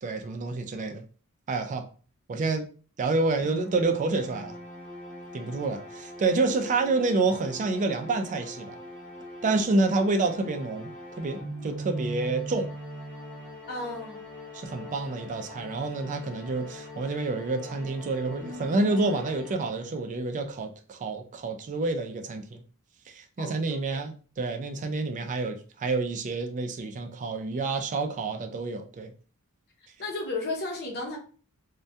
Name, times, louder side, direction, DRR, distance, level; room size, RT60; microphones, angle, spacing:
voice 1, 0.0-1.1 1.5-1.9 2.3-2.6 3.0-4.6 5.3-8.7 9.4-10.9 11.2-12.7 14.5-22.6 23.1-29.1, right 3 dB, 35° right, 0.3 m, -28 dB
sound 1, 3.4-20.1, equal, 5° left, 0.8 m, -41 dB
voice 2, 13.7-14.2 23.4-24.0 30.0-31.2, left 2 dB, 50° left, 0.6 m, -34 dB
2.2 x 2.2 x 2.6 m
head